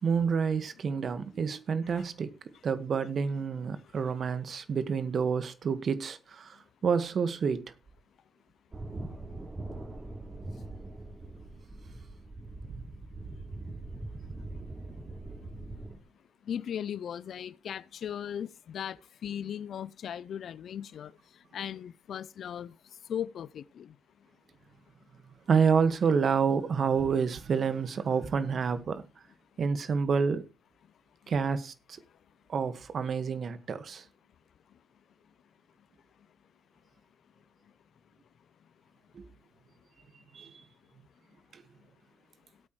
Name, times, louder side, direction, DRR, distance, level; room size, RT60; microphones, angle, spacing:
voice 1, 0.0-2.3 2.6-6.6 6.8-7.6 12.7-12.8 25.5-29.0 29.6-30.4 31.3-31.7 32.5-34.0 39.1-39.2 40.3-40.5 41.5-41.6, right 6 dB, 55° right, 1.7 m, -28 dB
sound 1, 8.7-16.0, right 2 dB, 30° right, 3.4 m, -42 dB
voice 2, 16.5-19.0 19.2-21.1 21.5-22.7 23.1-23.9, left 9 dB, 65° left, 0.6 m, -37 dB
18.0 x 8.7 x 3.2 m
supercardioid pair, 50°, 0 cm